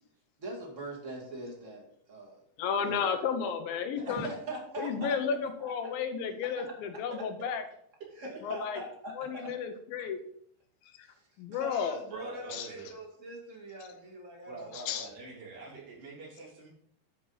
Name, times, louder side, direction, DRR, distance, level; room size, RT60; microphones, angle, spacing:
voice 1, 0.4-2.4 2.8-2.9 4.0-5.1 5.6-5.7 8.2-9.5 11.0-14.7 15.0-15.1 15.5-15.6, right 1 dB, 30° right, -1 dB, 1.6 m, -42 dB
voice 2, 2.6-4.3 4.8-7.6 8.4-8.8 9.2-10.2 11.4-12.0 12.5-12.7 14.9-15.1, left 6 dB, 75° left, 7 dB, 2.4 m, -32 dB
voice 3, 8.0-8.5 12.1-12.9 14.5-16.7, right 3 dB, 75° right, -6 dB, 5.4 m, -46 dB
12.0 x 5.3 x 4.1 m, 0.68 s
omnidirectional pair, 4.6 m